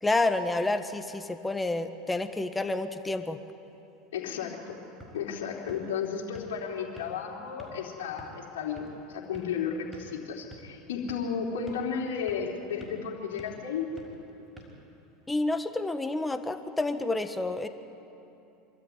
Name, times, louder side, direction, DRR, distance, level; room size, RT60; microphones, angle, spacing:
voice 1, 0.0-3.4 15.3-17.7, left 2 dB, 10° left, 8 dB, 1.4 m, -29 dB
voice 2, 4.1-4.8 5.1-13.9, left 6 dB, 75° left, -2 dB, 3.5 m, -33 dB
sound 1, 4.7-15.5, equal, 10° right, 6.0 m, -52 dB
25.0 x 13.0 x 9.8 m, 2.9 s
hypercardioid pair, 85°, 0 cm